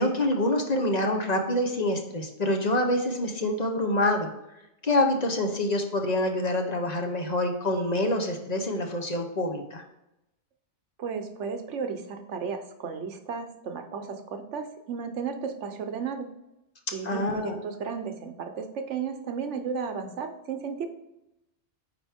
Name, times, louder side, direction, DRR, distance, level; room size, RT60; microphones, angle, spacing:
voice 1, 0.0-4.3 4.8-9.8 17.0-17.6, left 1 dB, 40° left, 4 dB, 1.0 m, -26 dB
voice 2, 11.0-16.3 16.9-20.9, right 6 dB, 85° right, 7 dB, 1.2 m, -34 dB
9.1 x 4.5 x 3.5 m, 0.88 s
omnidirectional pair, 1.2 m